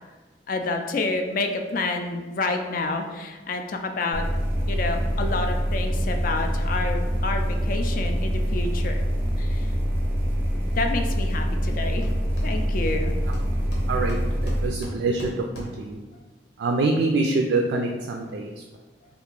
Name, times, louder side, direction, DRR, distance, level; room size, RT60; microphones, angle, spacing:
voice 1, 0.5-4.3 4.7-9.0 9.4-9.7 10.8-12.1 12.4-13.1, left 3 dB, 50° left, 4 dB, 0.3 m, -29 dB
sound 1, 4.1-14.7, equal, 10° right, 0.5 m, -25 dB
Hammer, 11.3-11.4 11.7-12.9 13.3-16.0, equal, 75° left, 0.9 m, -38 dB
voice 2, 13.9-16.0 16.6-18.5, right 3 dB, 85° right, 2 dB, 0.3 m, -25 dB
2.8 x 2.4 x 3.7 m, 1.2 s
head